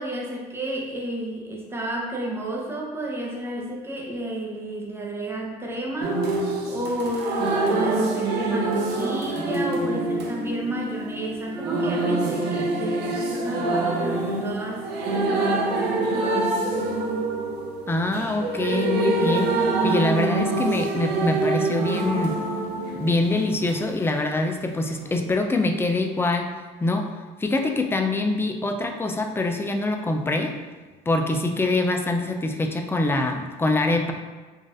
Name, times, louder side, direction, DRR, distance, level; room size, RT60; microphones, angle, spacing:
voice 1, 0.0-6.4 6.7-16.9, right 1 dB, 15° right, -2 dB, 0.8 m, -31 dB
sound 1, 6.0-23.8 25.1-25.2, right 2 dB, 80° right, 0.6 m, -25 dB
voice 2, 17.9-22.3 22.9-26.5 26.8-27.1 27.4-30.6 31.1-34.1, left 2 dB, 15° left, 4 dB, 0.4 m, -24 dB
3.9 x 2.5 x 3.7 m, 1.3 s
cardioid pair, 110°, 17 cm